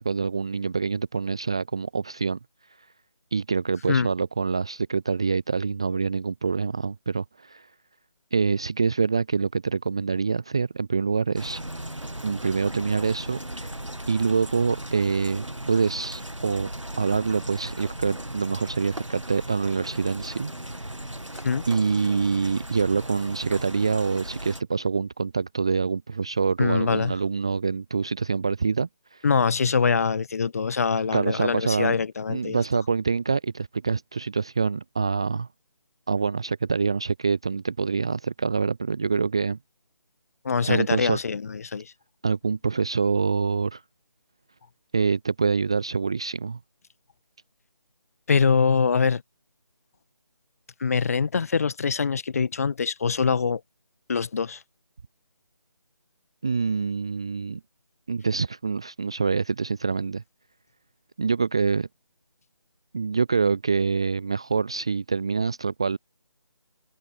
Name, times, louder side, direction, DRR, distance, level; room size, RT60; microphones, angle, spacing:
voice 1, 0.0-2.4 3.3-7.7 8.3-11.6 12.2-13.7 14.1-16.7 17.0-20.9 21.7-29.2 31.1-32.0 32.3-35.5 36.1-39.6 40.7-41.2 42.2-43.8 44.9-46.6 56.4-57.6 58.1-60.2 61.2-61.9 62.9-66.0, right 5 dB, 10° right, 0.5 m, -25 dB
sound 1, 11.4-24.6, right 1 dB, 90° right, 1.9 m, -37 dB
voice 2, 21.3-21.6 26.6-27.1 29.2-32.6 40.4-41.9 48.3-49.2 50.8-53.6 54.1-54.6, left 5 dB, 30° left, 1.4 m, -24 dB
figure-of-eight pair, 155°, 15 cm